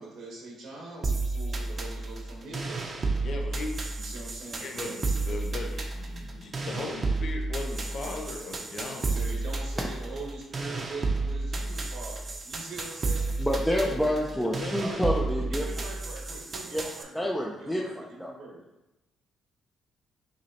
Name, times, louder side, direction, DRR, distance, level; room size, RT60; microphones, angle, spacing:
voice 1, 0.0-3.1 3.9-4.9 9.0-13.8 14.8-18.6, right 2 dB, 85° right, -2 dB, 1.2 m, -43 dB
sound 1, 1.0-17.0, right 3 dB, 40° right, 0.7 m, -32 dB
voice 2, 3.2-3.8 4.6-9.1 13.7-15.3, left 3 dB, 60° left, 2 dB, 0.8 m, -38 dB
voice 3, 13.4-15.6 16.7-16.8 17.1-18.3, equal, 5° left, -2 dB, 0.5 m, -28 dB
5.9 x 3.0 x 2.9 m, 0.98 s
cardioid pair, 90°, 0 cm